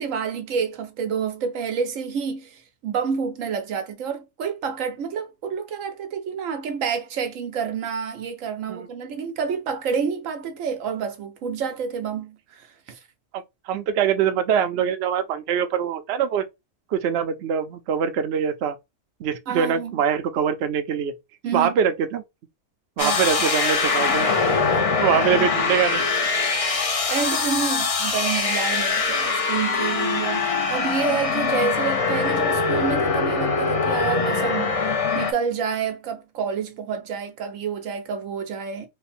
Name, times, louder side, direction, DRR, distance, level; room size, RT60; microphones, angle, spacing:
voice 1, 0.0-13.0 19.5-20.0 21.4-21.7 23.0-23.3 24.7-24.9 25.1-25.5 26.7-38.9, right 6 dB, 85° right, 1.1 m, -29 dB
voice 2, 13.7-16.4 16.9-18.8 19.2-21.1 21.5-22.2 23.0-24.3 25.0-26.0, right 8 dB, 65° right, 0.8 m, -23 dB
sound 1, 23.0-35.3, left 4 dB, 40° left, 0.5 m, -23 dB
3.2 x 2.2 x 4.2 m
omnidirectional pair, 1.3 m